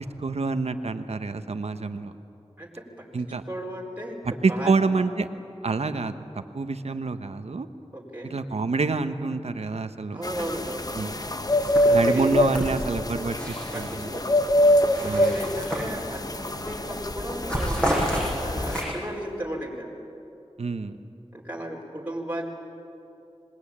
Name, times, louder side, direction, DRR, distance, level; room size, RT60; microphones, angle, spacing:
voice 1, 0.0-2.1 3.1-3.4 4.4-5.3 5.6-7.7 8.2-10.2 10.9-11.1 11.9-14.1 15.0-15.4 20.6-21.0, right 4 dB, 75° right, 9 dB, 1.2 m, -27 dB
voice 2, 3.5-4.2 4.5-4.7 7.9-8.4 10.1-10.9 11.9-12.5 13.7-14.3 14.9-17.9 18.4-19.9 21.3-22.5, right 1 dB, 15° right, -3 dB, 4.5 m, -34 dB
sound 1, 10.2-18.8, left 1 dB, 35° left, 1.2 m, -25 dB
sound 2, 11.2-11.3 11.6-14.1 14.5-16.4 16.7-16.9 17.2-19.2, equal, 10° left, 7.8 m, -31 dB
26.5 x 21.0 x 8.8 m, 2.8 s
wide cardioid pair, 55°, 11 cm